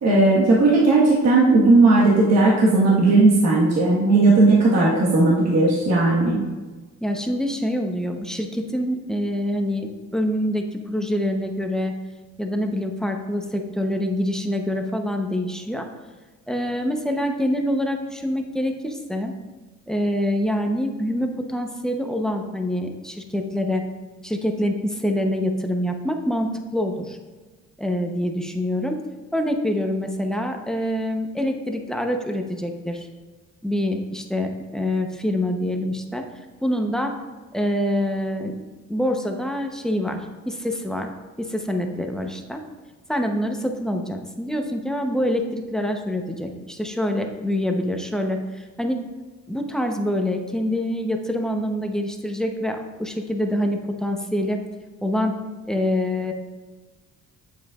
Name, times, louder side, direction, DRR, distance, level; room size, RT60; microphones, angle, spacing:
voice 1, 0.0-6.4, right 2 dB, 60° right, -5 dB, 1.5 m, -16 dB
voice 2, 7.0-12.0 12.4-15.9 16.5-19.3 19.9-23.8 24.2-27.2 27.8-29.0 29.3-33.1 33.6-36.3 36.6-37.2 37.5-38.5 38.9-41.1 41.4-42.6 43.1-49.0 49.5-54.6 55.0-55.4 55.7-56.3, left 1 dB, ahead, 3 dB, 0.8 m, -25 dB
7.9 x 7.3 x 2.4 m, 1.3 s
cardioid pair, 90°, 30 cm